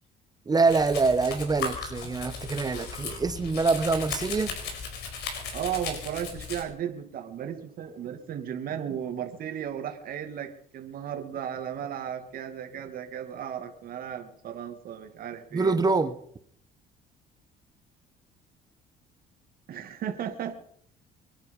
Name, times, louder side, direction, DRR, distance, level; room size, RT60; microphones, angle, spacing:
voice 1, 0.5-4.5 15.5-16.1, right 4 dB, 25° right, 12 dB, 1.2 m, -25 dB
Domestic sounds home sounds, 0.6-6.6, left 5 dB, 80° left, 4.6 m, -36 dB
voice 2, 5.5-15.8 19.7-20.5, right 9 dB, 60° right, 5 dB, 2.3 m, -35 dB
24.5 x 10.5 x 5.3 m, 0.65 s
cardioid pair, 110°, 17 cm